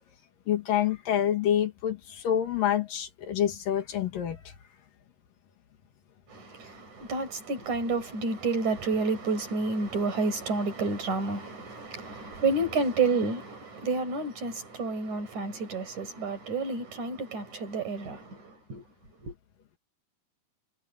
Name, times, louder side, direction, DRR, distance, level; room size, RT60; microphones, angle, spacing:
voice 1, 0.5-4.5, left 10 dB, 60° left, 2.9 m, -27 dB
voice 2, 6.3-18.8 19.2-19.3, right 3 dB, 45° right, 6.4 m, -30 dB
omnidirectional pair, 5.1 m